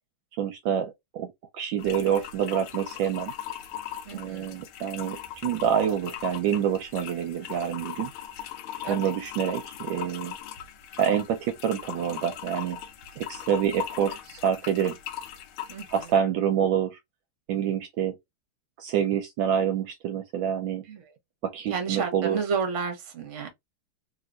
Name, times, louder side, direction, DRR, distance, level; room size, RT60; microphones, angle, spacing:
voice 1, 0.4-1.3 1.5-3.3 4.1-8.1 8.9-10.4 11.0-12.8 13.2-15.0 15.9-17.0 17.5-18.1 18.8-20.8 21.4-22.4, right 9 dB, 75° right, 1.2 m, -27 dB
sound 1, 1.8-16.2, left 10 dB, 90° left, 1.5 m, -39 dB
voice 2, 4.0-4.6 8.8-9.2 15.7-16.1 20.8-21.1 21.7-23.5, right 5 dB, 50° right, 1.0 m, -31 dB
3.2 x 2.8 x 2.4 m
omnidirectional pair, 2.3 m